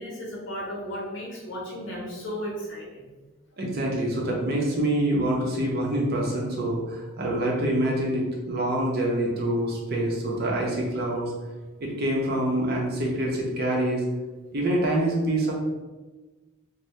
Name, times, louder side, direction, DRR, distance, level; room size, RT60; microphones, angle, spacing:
voice 1, 0.0-3.1, equal, 60° left, -4 dB, 0.9 m, -35 dB
voice 2, 3.6-11.3 11.8-14.0 14.5-15.5, right 1 dB, 45° right, -2 dB, 0.6 m, -26 dB
2.7 x 2.1 x 3.2 m, 1.2 s
head